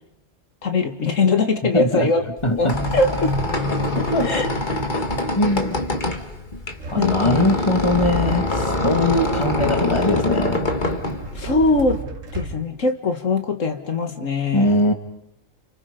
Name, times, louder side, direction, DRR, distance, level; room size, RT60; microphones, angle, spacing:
voice 1, 0.6-2.2 2.6-3.3 4.2-4.5 6.1-6.2 6.9-7.4 11.3-12.0 12.3-14.8, left 3 dB, 80° left, 6 dB, 2.1 m, -21 dB
voice 2, 1.7-2.1 2.4-2.8 4.1-4.3 5.4-5.8 6.9-10.7 14.5-14.9, left 1 dB, 20° left, 4 dB, 2.4 m, -21 dB
Squeak, 2.4-12.0, left 2 dB, 40° left, 2.0 m, -24 dB
sound 1, 6.8-12.6, right 3 dB, 85° right, 2.4 m, -34 dB
30.0 x 29.0 x 5.3 m, 0.77 s
omnidirectional pair, 1.3 m